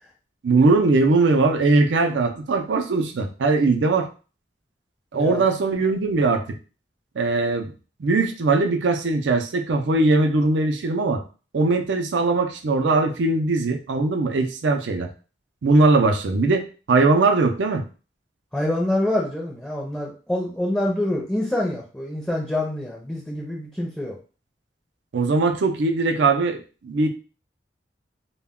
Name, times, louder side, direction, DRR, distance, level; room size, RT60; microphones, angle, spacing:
voice 1, 0.4-4.1 5.1-6.4 7.2-7.7 8.0-11.2 11.5-15.1 15.6-17.8 25.1-26.6 26.8-27.1, right 3 dB, 85° right, 4 dB, 0.5 m, -20 dB
voice 2, 5.1-5.5 18.5-24.2, left 1 dB, 5° left, -3 dB, 0.5 m, -26 dB
2.2 x 2.2 x 3.5 m, 0.35 s
head